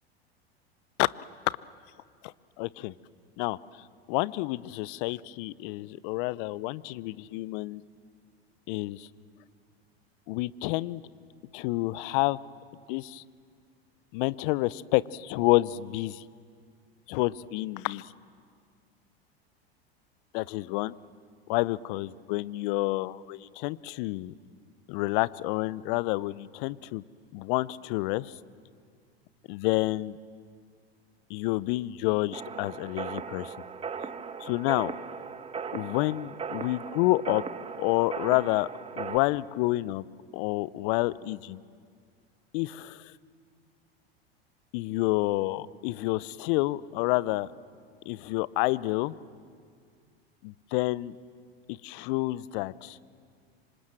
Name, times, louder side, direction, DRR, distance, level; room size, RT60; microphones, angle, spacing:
voice 1, 2.2-2.9 3.4-7.8 8.7-9.1 10.3-11.0 11.5-12.4 12.9-13.2 14.1-16.2 17.1-18.1 20.3-20.9 21.5-24.3 24.9-27.0 27.3-28.3 29.5-30.2 31.3-33.5 34.4-34.9 35.7-37.4 37.8-38.7 39.0-40.0 40.3-41.6 42.5-43.1 44.7-47.5 48.1-49.1 50.4-51.2 51.7-53.0, left 19 dB, 55° left, 20 dB, 0.8 m, -29 dB
sound 1, 32.3-39.2, right 6 dB, 20° right, 1.2 m, -38 dB
27.0 x 25.5 x 7.8 m, 2.1 s
hypercardioid pair, 90°, 31 cm